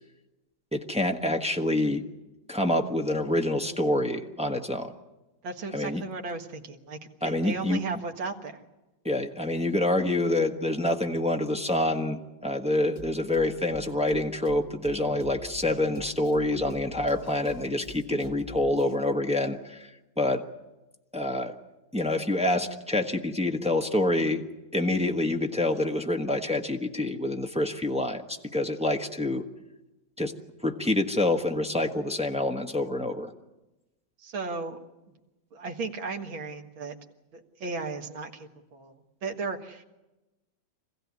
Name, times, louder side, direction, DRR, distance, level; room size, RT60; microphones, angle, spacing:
voice 1, 0.7-2.0 2.5-4.9 5.7-6.0 7.2-7.8 9.0-19.9 20.2-20.4 21.1-21.5 21.9-24.5 24.7-29.5 30.2-30.3 30.6-33.3, left 1 dB, 5° right, 3 dB, 0.9 m, -27 dB
voice 2, 5.4-8.6 34.2-34.8 35.5-37.0 37.3-39.8, right 3 dB, 80° right, 3 dB, 2.5 m, -35 dB
Drum kit, 13.0-19.0, left 7 dB, 25° left, 2.7 m, -47 dB
25.5 x 16.0 x 9.6 m, 1.0 s
omnidirectional pair, 2.1 m